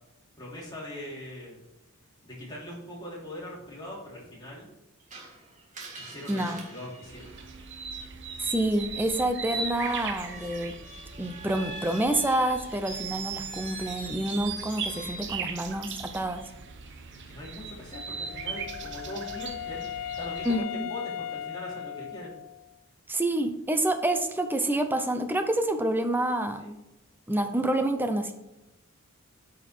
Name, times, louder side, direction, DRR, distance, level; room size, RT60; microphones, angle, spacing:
voice 1, 0.4-1.6 2.2-4.7 6.0-7.3 9.4-9.5 17.3-22.3 26.6-26.8, left 1 dB, 20° left, -5 dB, 3.0 m, -41 dB
Screech, 5.1-8.0 9.6-15.4, right 4 dB, 35° right, 1.6 m, -41 dB
voice 2, 6.3-6.6 8.4-10.7 11.2-16.4 20.4-20.9 23.1-26.8 27.3-28.3, right 1 dB, 10° right, 7 dB, 0.7 m, -28 dB
sound 1, 7.0-20.6, right 5 dB, 55° right, 0.8 m, -39 dB
Wind instrument woodwind instrument, 17.9-22.7, left 10 dB, 60° left, 0.4 m, -38 dB
8.7 x 5.1 x 4.4 m, 0.94 s
head